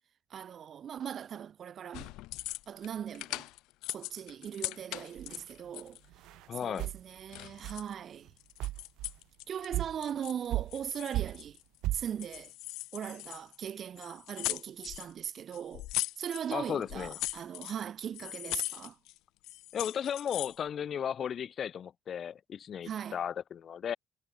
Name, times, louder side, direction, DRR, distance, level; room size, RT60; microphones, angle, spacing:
voice 1, 0.3-2.1 2.7-3.5 3.9-6.0 6.6-8.3 9.5-11.6 11.9-12.5 12.9-15.9 16.2-19.0 22.8-23.2, right 9 dB, 40° right, 0.8 m, -39 dB
sound 1, 1.9-2.9 3.1-6.1 6.6-7.9 8.4-9.7 10.0-10.5 10.7-11.8 12.2-13.7 14.0-15.1 15.5-16.5 16.8-17.8 18.1-19.2 19.4-20.6, left 19 dB, 85° left, 2.4 m, -39 dB
sound 2, 5.2-5.4 6.1-6.5 6.8-7.0 7.6-7.8 8.3-8.4 8.6-9.2 9.7-10.0 10.5-10.9 11.1-11.5 11.8-12.1, right 17 dB, 75° right, 0.8 m, -34 dB
voice 2, 6.5-6.9 16.5-17.2 19.7-24.0, left 8 dB, 35° left, 3.2 m, -35 dB
cardioid pair, 155°, 0 cm